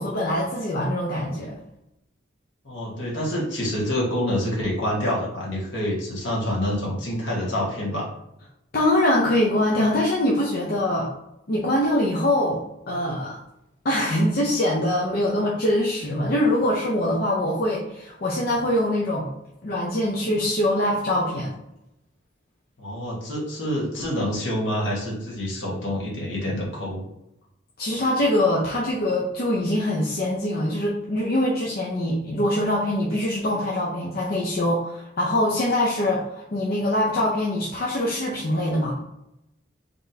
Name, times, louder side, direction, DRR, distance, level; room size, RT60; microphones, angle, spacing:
voice 1, 0.0-1.6 8.7-11.1 11.5-13.4 13.8-19.3 19.6-21.5 27.8-38.9, left 1 dB, 50° left, -4 dB, 0.6 m, -23 dB
voice 2, 2.6-8.1 22.8-27.0, equal, 70° left, -4 dB, 1.5 m, -27 dB
3.9 x 3.5 x 2.8 m, 0.85 s
head